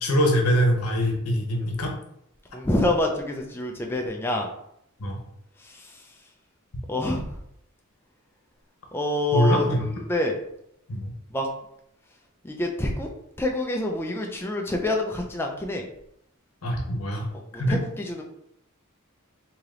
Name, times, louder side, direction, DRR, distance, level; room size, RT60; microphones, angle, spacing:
voice 1, 0.0-1.9 5.0-5.2 9.3-9.8 10.9-11.1 16.6-17.3 17.6-17.8, equal, 90° left, 2 dB, 0.9 m, -23 dB
voice 2, 2.5-4.5 5.6-6.0 6.9-7.3 8.9-10.4 11.3-11.5 12.4-13.1 13.4-15.9 17.3-18.2, left 1 dB, 10° left, 1 dB, 0.4 m, -27 dB
3.3 x 2.9 x 3.7 m, 0.75 s
head